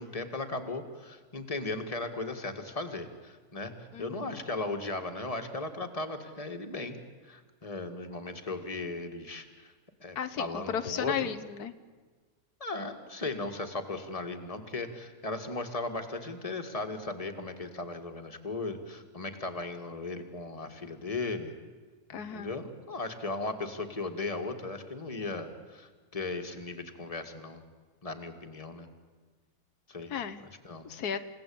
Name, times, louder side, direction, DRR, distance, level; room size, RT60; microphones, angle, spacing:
voice 1, 0.0-7.0 7.2-9.7 10.0-11.3 12.6-21.5 22.1-27.6 28.0-28.9 29.9-30.1 30.4-30.9, left 3 dB, 25° left, 5 dB, 2.0 m, -37 dB
voice 2, 3.9-4.2 10.2-11.7 22.1-22.5 30.1-30.4 30.8-31.2, left 8 dB, 90° left, 9 dB, 1.6 m, -34 dB
29.5 x 17.0 x 8.7 m, 1.4 s
omnidirectional pair, 1.6 m